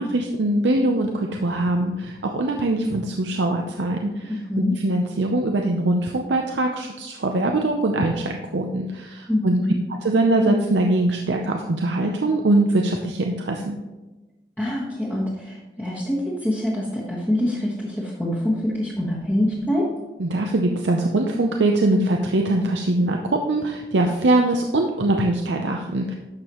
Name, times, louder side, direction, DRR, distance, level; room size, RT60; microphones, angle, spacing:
voice 1, 0.0-4.3 4.6-9.6 10.0-13.8 20.2-26.1, right 2 dB, 85° right, 2 dB, 0.7 m, -22 dB
voice 2, 4.3-4.8 9.3-9.7 14.6-19.9, left 1 dB, 10° left, -8 dB, 1.4 m, -25 dB
11.5 x 6.8 x 3.0 m, 1.1 s
head